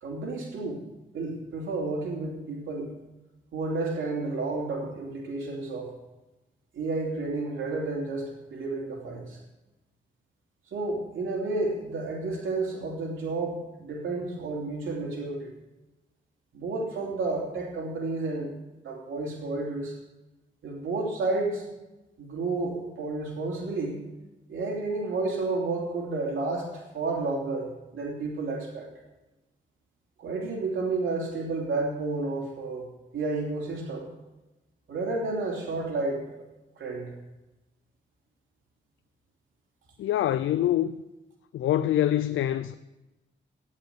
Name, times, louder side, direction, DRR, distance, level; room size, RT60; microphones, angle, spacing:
voice 1, 0.0-0.8 1.1-2.9 3.5-5.9 6.7-9.4 10.7-15.5 16.5-18.5 18.8-20.0 20.6-21.7 22.2-24.0 24.5-28.9 30.2-32.8 33.1-34.1 34.9-36.4 36.8-37.1, right 3 dB, 85° right, 3.0 m, -31 dB
voice 2, 40.0-40.9 41.5-42.7, left 12 dB, 90° left, 0.5 m, -25 dB
13.0 x 9.6 x 7.1 m
cardioid pair, 60°, 20 cm